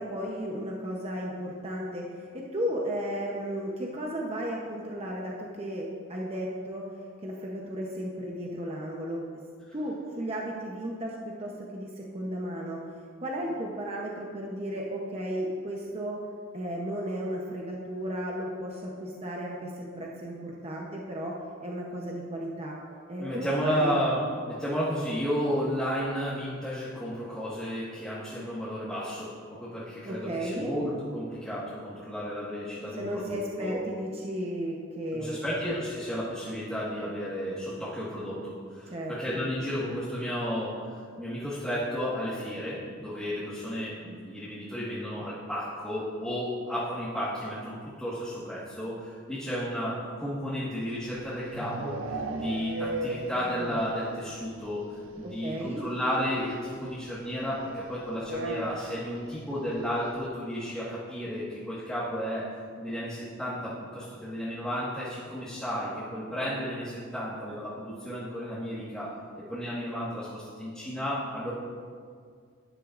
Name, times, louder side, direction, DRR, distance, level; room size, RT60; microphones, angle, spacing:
voice 1, 0.0-6.9 7.2-9.3 9.7-12.9 13.2-16.2 16.5-22.8 23.1-24.0 30.0-30.7 33.0-35.4 38.8-39.5 55.2-55.8, equal, 30° right, -2 dB, 0.8 m, -34 dB
voice 2, 23.2-33.8 35.1-62.5 62.8-69.2 69.5-71.5, equal, 5° left, -12 dB, 1.6 m, -33 dB
sound 1, 51.0-54.0 54.3-54.4 54.7-54.8 55.1-55.2 56.4-56.5 58.2-59.1, right 2 dB, 65° right, 0.6 m, -35 dB
12.0 x 10.5 x 2.5 m, 2.1 s
head